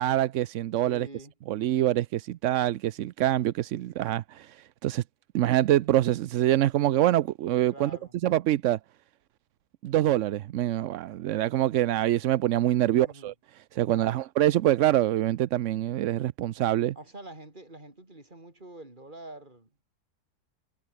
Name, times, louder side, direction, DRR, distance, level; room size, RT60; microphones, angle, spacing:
voice 1, 0.0-1.1 1.5-5.0 5.3-7.9 8.2-8.8 9.8-13.3 13.7-16.9, right 13 dB, 65° right, 0.8 m, -25 dB
voice 2, 0.8-1.3 7.7-8.1 12.9-13.3 13.8-14.2 16.9-19.7, right 2 dB, 30° right, 4.5 m, -46 dB
omnidirectional pair, 1.7 m